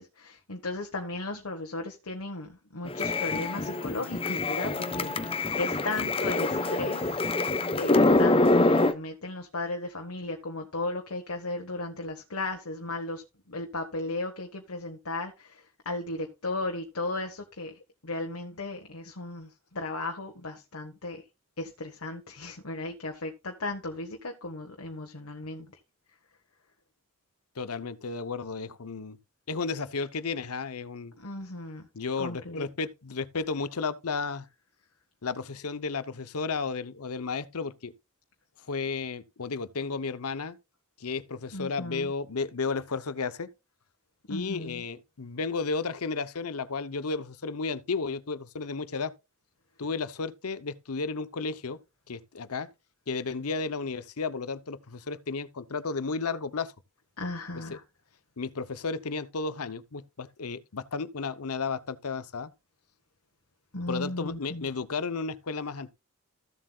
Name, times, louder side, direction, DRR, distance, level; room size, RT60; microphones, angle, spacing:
voice 1, 0.0-21.2 21.6-25.7 31.2-31.9 32.2-32.6 41.5-42.1 44.3-44.8 57.2-57.8 63.7-64.7, left 2 dB, 70° left, 1.5 m, -36 dB
sound 1, 2.9-8.9, left 2 dB, 25° left, 0.9 m, -25 dB
voice 2, 27.6-29.2 29.5-31.1 31.9-34.4 35.2-37.9 38.7-40.6 41.0-43.5 44.3-49.1 49.8-51.8 52.1-52.7 53.1-56.7 58.4-62.5 63.9-65.9, left 4 dB, 85° left, 0.9 m, -33 dB
15.0 x 7.6 x 2.4 m
head